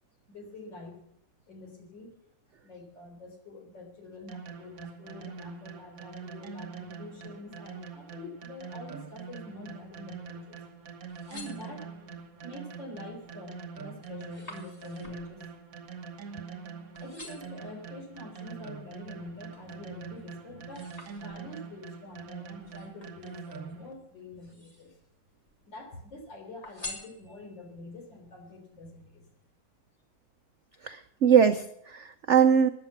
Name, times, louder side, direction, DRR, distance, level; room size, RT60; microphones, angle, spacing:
voice 1, 0.3-1.0 1.5-2.1 2.6-10.6 11.2-12.1 12.4-15.4 17.0-25.0 25.7-29.3, left 2 dB, 75° left, 3 dB, 4.3 m, -45 dB
sound 1, 4.3-23.9, right 6 dB, 50° right, 1.5 m, -44 dB
sound 2, 11.1-12.2 12.8-13.2 13.5-16.6 16.9-17.6 18.3-19.7 20.2-21.7 22.6-23.7 24.3-25.1 25.4-26.1 26.6-27.7 28.2-28.3, left 2 dB, 20° left, 2.4 m, -48 dB
voice 2, 30.8-32.7, right 7 dB, 80° right, 10 dB, 0.6 m, -22 dB
14.0 x 10.0 x 7.2 m, 0.75 s
omnidirectional pair, 2.0 m